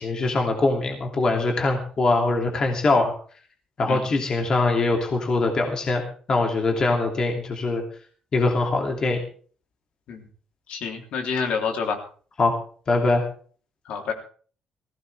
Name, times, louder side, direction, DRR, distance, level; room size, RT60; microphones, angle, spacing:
voice 1, 0.0-3.1 3.8-7.8 8.3-9.2 12.4-12.5 12.9-13.2, left 3 dB, 35° left, 2 dB, 2.8 m, -22 dB
voice 2, 10.7-12.0 13.9-14.1, left 5 dB, 65° left, 2 dB, 3.5 m, -28 dB
19.5 x 16.0 x 3.5 m, 0.43 s
cardioid pair, 150°, 2 cm